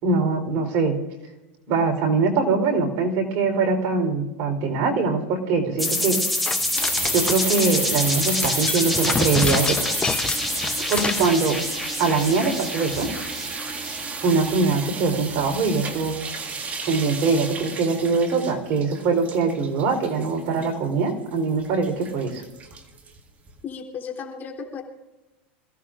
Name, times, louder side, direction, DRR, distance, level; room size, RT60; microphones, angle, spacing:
voice 1, 0.0-1.0 1.7-6.2 7.1-9.8 10.9-11.6 12.0-13.1 14.2-16.2 16.9-22.4, right 4 dB, 50° right, 3 dB, 3.9 m, -22 dB
sound 1, 5.8-14.3, left 1 dB, ahead, 3.1 m, -27 dB
sound 2, 6.5-7.7 8.1-11.4, left 5 dB, 15° left, 0.8 m, -29 dB
sound 3, 6.7-23.6, right 4 dB, 25° right, 1.9 m, -34 dB
voice 2, 23.6-24.8, left 6 dB, 35° left, 1 dB, 3.4 m, -34 dB
27.0 x 16.0 x 2.5 m, 1.0 s
supercardioid pair, 130°, 6 cm